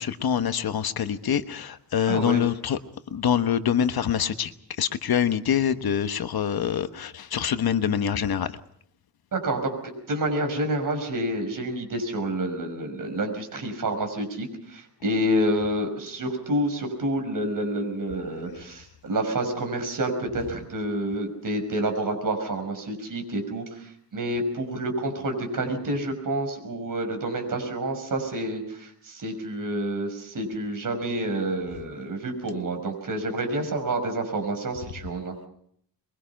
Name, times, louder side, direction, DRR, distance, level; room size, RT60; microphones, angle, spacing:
voice 1, 0.0-2.8 3.1-4.5 4.8-8.5, left 8 dB, 65° left, 10 dB, 1.2 m, -25 dB
voice 2, 2.1-2.4 9.3-35.4, right 1 dB, 55° right, 4 dB, 5.9 m, -28 dB
23.0 x 22.5 x 5.8 m, 0.67 s
wide cardioid pair, 130°, 40 cm